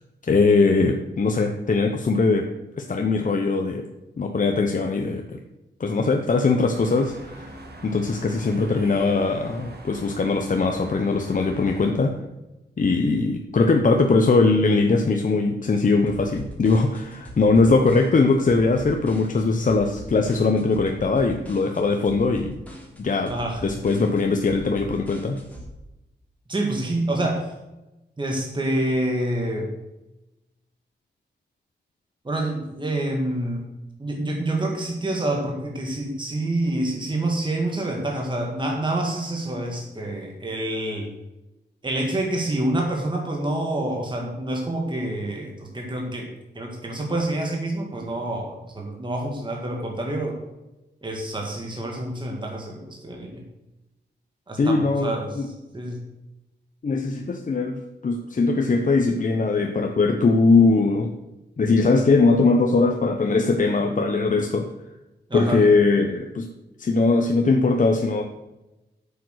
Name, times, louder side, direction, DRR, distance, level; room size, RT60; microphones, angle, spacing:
voice 1, 0.3-2.5 2.8-3.8 4.2-5.4 5.8-7.5 7.8-12.1 12.8-22.6 23.0-23.3 23.6-25.4 54.6-55.5 56.8-61.1 61.6-64.7 65.3-66.5 66.8-68.2, left 3 dB, 45° left, 4 dB, 0.9 m, -21 dB
sound 1, 6.7-11.9, right 2 dB, 60° right, 1.9 m, -43 dB
sound 2, 16.1-25.7, equal, 5° left, 3.5 m, -41 dB
voice 2, 23.3-23.6 26.5-27.5 28.2-29.7 32.3-33.6 34.0-41.1 41.8-46.3 46.6-50.4 51.0-53.4 54.5-55.4 55.7-56.1 65.3-65.6, right 1 dB, 25° right, 0 dB, 1.9 m, -27 dB
8.2 x 7.3 x 6.5 m, 0.99 s
wide cardioid pair, 95°, 19 cm